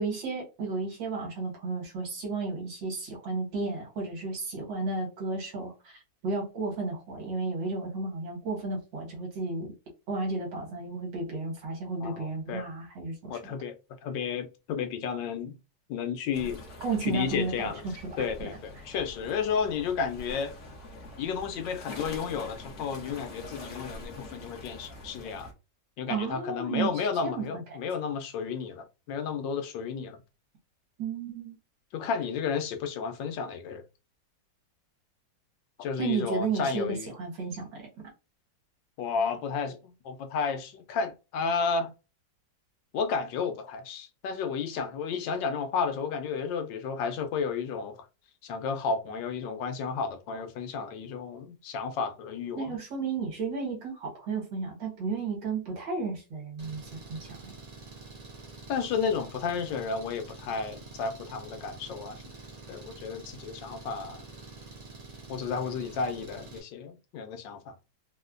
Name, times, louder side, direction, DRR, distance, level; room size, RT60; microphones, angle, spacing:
voice 1, 0.0-9.7 10.1-13.5 16.8-18.5 26.1-27.8 31.0-31.6 36.0-37.9 52.6-56.8 57.1-57.5, right 4 dB, 80° right, 2.1 m, -33 dB
voice 2, 12.0-12.7 13.3-13.7 14.0-15.5 15.9-16.7 17.0-17.8 18.2-20.5 21.2-25.5 26.0-30.2 31.9-33.8 35.8-37.1 39.0-39.8 40.0-41.9 42.9-48.0 48.4-52.8 58.7-62.2 62.7-64.3 65.3-67.7, left 5 dB, 85° left, 1.4 m, -32 dB
sound 1, 16.3-25.5, left 2 dB, 50° left, 1.1 m, -44 dB
Engine, 56.6-66.6, right 3 dB, 65° right, 0.4 m, -47 dB
4.1 x 2.1 x 2.4 m
omnidirectional pair, 2.0 m